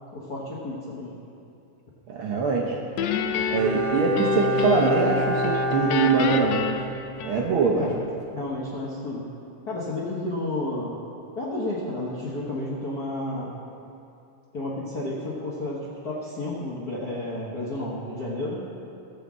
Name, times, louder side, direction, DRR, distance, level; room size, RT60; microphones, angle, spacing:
voice 1, 0.1-1.1 7.7-7.9 8.3-9.2 9.7-11.0 11.4-13.5 14.5-18.6, left 1 dB, 60° left, -6 dB, 1.0 m, -31 dB
voice 2, 2.1-2.8 3.5-6.5 7.2-7.9, right 5 dB, 75° right, -2 dB, 1.2 m, -23 dB
Guitar, 3.0-5.1 5.4-7.7, left 7 dB, 80° left, 1.5 m, -29 dB
Bowed string instrument, 3.5-7.3 7.6-7.7, equal, 45° right, 0.7 m, -27 dB
15.5 x 5.6 x 7.3 m, 2.6 s
omnidirectional pair, 3.6 m